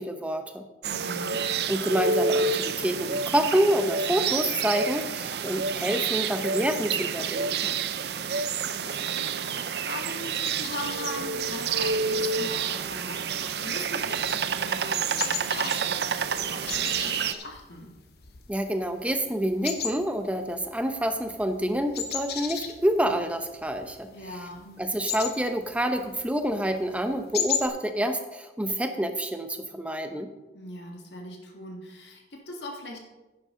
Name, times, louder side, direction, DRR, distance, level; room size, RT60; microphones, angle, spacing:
voice 1, 0.0-0.6 1.7-7.7 18.5-24.1 24.8-30.3, equal, 5° right, 7 dB, 0.8 m, -27 dB
voice 2, 0.8-1.4 8.0-17.9 24.1-24.7 30.5-33.0, left 1 dB, 85° left, 1 dB, 1.9 m, -40 dB
sound 1, 0.8-17.3, right 5 dB, 65° right, 0.5 m, -29 dB
sound 2, 10.3-27.7, left 7 dB, 60° left, 0.9 m, -38 dB
11.0 x 10.0 x 3.8 m, 1.1 s
head